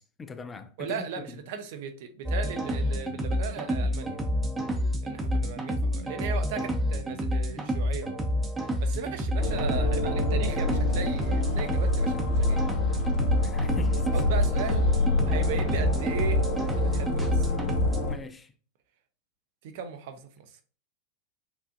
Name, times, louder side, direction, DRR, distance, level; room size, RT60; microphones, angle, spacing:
voice 1, 0.0-1.2 13.4-14.1 18.1-18.5, left 4 dB, 15° left, 0.4 m, -41 dB
voice 2, 0.8-4.2 5.0-8.2 8.8-12.6 14.1-14.9 15.3-16.4 16.8-17.5 19.6-20.5, right 6 dB, 50° right, 0.6 m, -37 dB
sound 1, 2.2-18.0, equal, 10° right, 0.8 m, -29 dB
sound 2, 9.4-18.1, left 2 dB, 40° left, 1.2 m, -27 dB
6.9 x 2.5 x 2.5 m
figure-of-eight pair, 90°, 0 cm